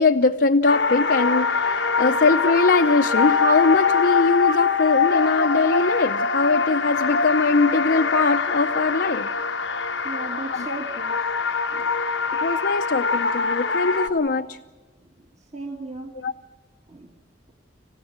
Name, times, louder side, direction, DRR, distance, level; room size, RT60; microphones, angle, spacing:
voice 1, 0.0-9.3 10.5-10.7 12.4-14.6 16.1-16.3, left 3 dB, 60° left, 5 dB, 0.7 m, -21 dB
sound 1, 0.7-14.1, left 5 dB, 85° left, 1.1 m, -23 dB
voice 2, 10.0-11.2 11.7-11.8 15.5-16.1 16.9-17.1, right 2 dB, 40° right, 1 dB, 1.6 m, -35 dB
27.5 x 16.0 x 8.8 m, 1.3 s
head